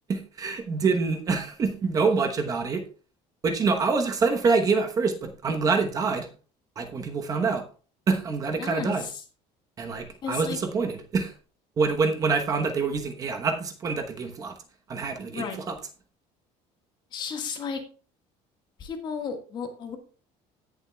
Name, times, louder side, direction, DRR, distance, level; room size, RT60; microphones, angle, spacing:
voice 1, 0.1-2.8 3.4-6.3 6.8-7.6 8.1-9.0 9.8-11.3 11.8-14.5 14.9-15.7, right 4 dB, 25° right, 4 dB, 1.0 m, -26 dB
voice 2, 8.5-9.2 10.2-10.6 15.3-15.6 17.1-17.8 18.8-20.0, left 6 dB, 35° left, 5 dB, 1.6 m, -33 dB
17.0 x 7.2 x 2.3 m, 0.38 s
cardioid pair, 175°, 14 cm